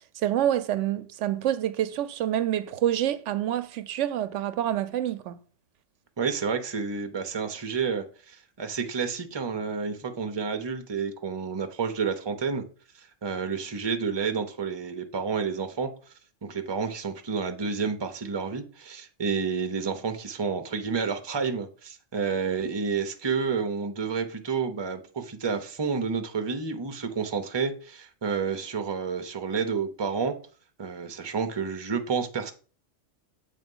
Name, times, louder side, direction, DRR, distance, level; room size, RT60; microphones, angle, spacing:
voice 1, 0.1-5.4, right 11 dB, 80° right, 0.9 m, -27 dB
voice 2, 6.2-12.6 13.0-15.9 16.4-30.4 30.8-32.5, right 5 dB, 25° right, 0.7 m, -30 dB
7.8 x 3.4 x 5.4 m
omnidirectional pair, 1.2 m